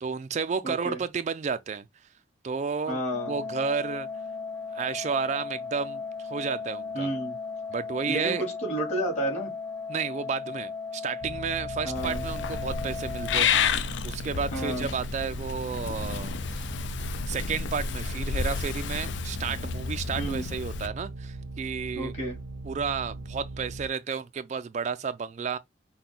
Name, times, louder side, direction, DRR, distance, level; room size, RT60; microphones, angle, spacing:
voice 1, 0.0-1.8 2.4-3.0 3.3-4.1 4.7-7.1 7.7-8.4 9.9-16.7 17.3-22.1 22.7-25.6, right 6 dB, 35° right, 0.3 m, -32 dB
voice 2, 0.6-1.0 2.9-3.4 6.9-7.3 8.1-9.5 11.8-12.2 14.5-14.9 20.2-20.4 21.9-22.4, right 1 dB, 35° left, 2.6 m, -31 dB
Organ, 3.1-14.1, left 4 dB, 5° left, 0.7 m, -37 dB
sound 1, 11.2-23.9, right 2 dB, 80° right, 0.6 m, -40 dB
Purr / Meow, 11.9-20.9, left 6 dB, 60° left, 0.4 m, -31 dB
5.9 x 2.1 x 3.7 m
head